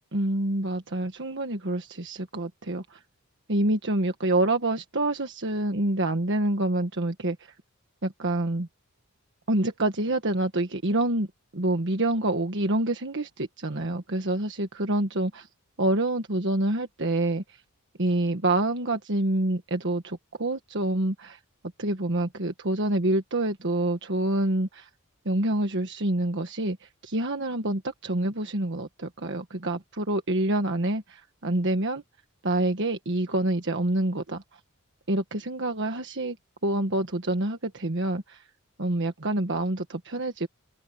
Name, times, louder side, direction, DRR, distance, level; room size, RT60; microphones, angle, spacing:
voice 1, 0.1-3.0 3.5-7.5 8.0-8.7 9.5-11.3 11.5-15.5 15.8-17.4 18.0-21.4 21.8-24.9 25.2-31.0 31.4-32.0 32.4-34.4 35.1-36.4 36.6-38.4 38.8-40.5, right 1 dB, 55° right, 1.5 m, -27 dB
open air
head